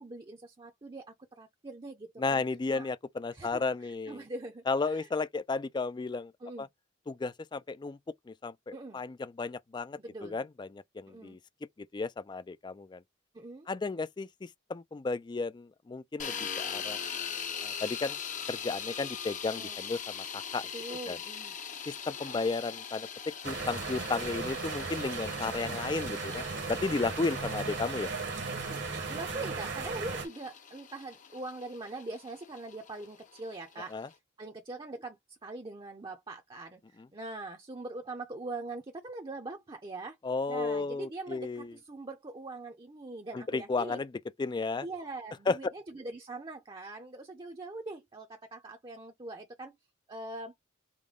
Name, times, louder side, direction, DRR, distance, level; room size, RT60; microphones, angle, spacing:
voice 1, 0.0-2.4 2.7-2.9 3.3-5.1 6.4-6.7 8.7-9.0 10.0-10.4 11.1-11.4 13.3-13.7 19.5-19.8 20.7-21.5 28.7-33.9 34.4-40.2 40.5-44.0 44.8-49.7 50.1-50.5, right 2 dB, 25° right, 0.6 m, -42 dB
voice 2, 2.2-4.2 4.7-6.3 6.6-6.7 7.1-8.0 8.3-11.4 11.8-13.0 13.7-17.0 17.6-18.2 18.5-20.7 21.1-21.2 21.9-28.1 33.9-34.1 40.2-41.7 43.3-44.1 44.4-44.9 45.5-45.6, left 3 dB, 20° left, 0.3 m, -34 dB
sound 1, 16.2-34.1, left 7 dB, 40° left, 0.7 m, -41 dB
sound 2, 23.4-30.3, right 4 dB, 60° right, 1.1 m, -36 dB
5.0 x 2.2 x 3.6 m
head